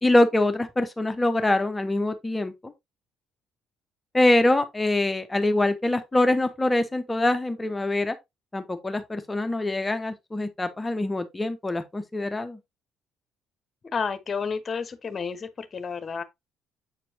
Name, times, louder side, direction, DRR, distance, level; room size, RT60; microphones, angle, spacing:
voice 1, 0.0-2.7 4.1-8.2 8.5-12.6, left 1 dB, 20° left, 1.0 m, -24 dB
voice 2, 13.9-16.2, left 5 dB, 40° left, 1.1 m, -31 dB
8.0 x 4.4 x 2.7 m
hypercardioid pair, 50°, 0 cm